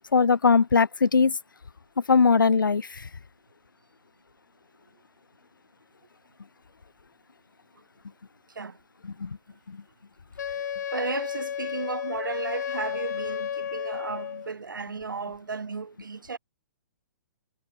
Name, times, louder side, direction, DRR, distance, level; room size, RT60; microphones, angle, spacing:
voice 1, 0.1-1.3 2.1-2.9 9.2-9.4 9.7-9.8, left 5 dB, 85° left, 0.7 m, -20 dB
Wind instrument woodwind instrument, 10.4-14.5, left 9 dB, 60° left, 2.1 m, -32 dB
voice 2, 10.9-16.4, right 4 dB, 80° right, 3.1 m, -34 dB
figure-of-eight pair, 130°, 11 cm